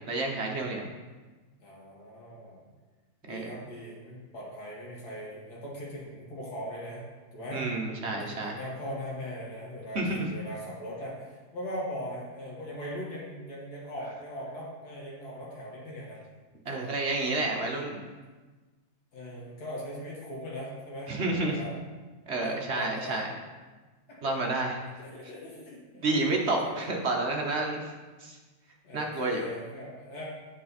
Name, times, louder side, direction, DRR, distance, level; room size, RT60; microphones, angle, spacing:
voice 1, 0.1-0.8 3.3-3.5 7.5-8.6 9.9-10.3 16.7-18.0 21.1-21.6 22.3-23.3 24.2-24.8 26.0-27.8 28.2-28.4 28.9-29.5, right 2 dB, 50° right, 1 dB, 1.1 m, -30 dB
voice 2, 1.6-2.7 3.2-7.0 7.3-7.7 8.1-16.2 16.7-16.9 17.4-17.9 19.1-21.7 22.3-23.3 24.1-27.1 28.8-30.2, equal, 85° left, -5 dB, 2.2 m, -40 dB
9.0 x 5.0 x 4.1 m, 1.3 s
omnidirectional pair, 1.7 m